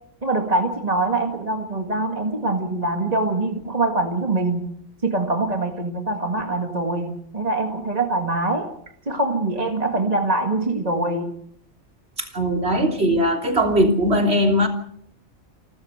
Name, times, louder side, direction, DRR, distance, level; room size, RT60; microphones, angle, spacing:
voice 1, 0.2-4.7 5.0-8.7 9.1-11.3, right 2 dB, 30° right, 4 dB, 1.9 m, -23 dB
voice 2, 12.2-14.7, equal, 50° right, 3 dB, 3.6 m, -20 dB
28.5 x 13.0 x 8.0 m, 0.71 s
omnidirectional pair, 1.4 m